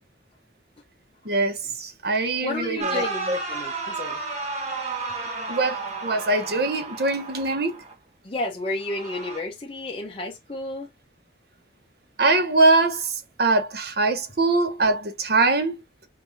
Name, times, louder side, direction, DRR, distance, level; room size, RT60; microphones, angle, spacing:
voice 1, 1.2-3.4 5.5-7.8 12.2-15.7, right 3 dB, 60° right, 1.1 m, -23 dB
voice 2, 2.4-4.3 8.2-10.9, left 2 dB, 30° left, 0.8 m, -31 dB
sound 1, 2.8-7.9 8.8-9.4, right 3 dB, 35° right, 1.3 m, -32 dB
5.7 x 2.7 x 2.7 m
head